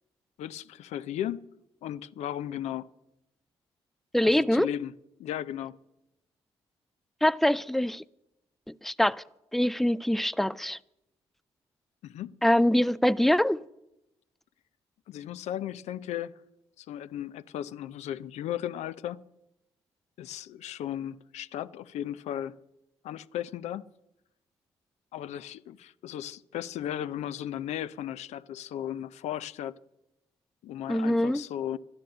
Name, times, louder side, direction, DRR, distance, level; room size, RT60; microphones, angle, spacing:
voice 1, 0.4-1.4 1.8-2.9 4.2-4.9 5.2-5.8 12.0-12.3 15.1-16.4 16.8-19.2 20.2-22.6 23.0-23.9 25.1-29.7 30.6-31.8, left 11 dB, 80° left, 0.5 m, -36 dB
voice 2, 4.1-4.7 7.2-8.0 8.7-9.2 9.5-10.8 12.4-13.6 30.9-31.4, left 1 dB, ahead, 0.4 m, -24 dB
13.0 x 10.5 x 7.8 m
supercardioid pair, 65°, 11 cm